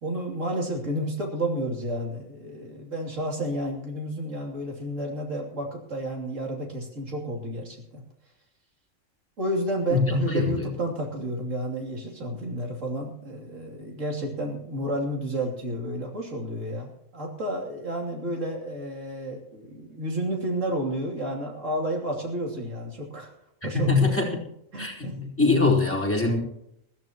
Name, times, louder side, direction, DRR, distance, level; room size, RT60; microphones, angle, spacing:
voice 1, 0.0-8.0 9.4-23.3 23.6-24.2 24.7-25.2, right 1 dB, 65° right, 0 dB, 3.3 m, -31 dB
voice 2, 9.9-10.7 23.7-24.4 24.8-26.4, left 3 dB, 10° left, -4 dB, 3.6 m, -23 dB
20.5 x 14.0 x 3.0 m, 0.78 s
omnidirectional pair, 1.4 m